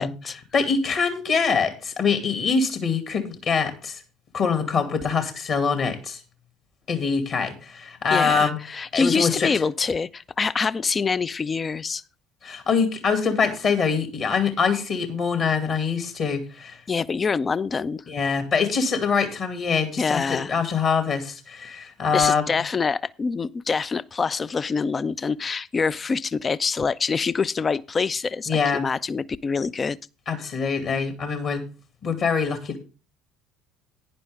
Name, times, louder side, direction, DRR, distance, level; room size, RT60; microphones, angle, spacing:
voice 1, 0.0-0.3 8.1-12.0 16.9-18.0 20.0-20.6 22.1-30.0, left 5 dB, 25° left, 0.5 m, -25 dB
voice 2, 0.5-4.0 4.3-6.2 6.9-9.5 12.4-16.8 18.1-22.6 28.5-28.8 30.3-31.6 32.0-32.8, left 5 dB, 45° left, 2.3 m, -24 dB
11.0 x 10.0 x 3.5 m
figure-of-eight pair, 60°, 0 cm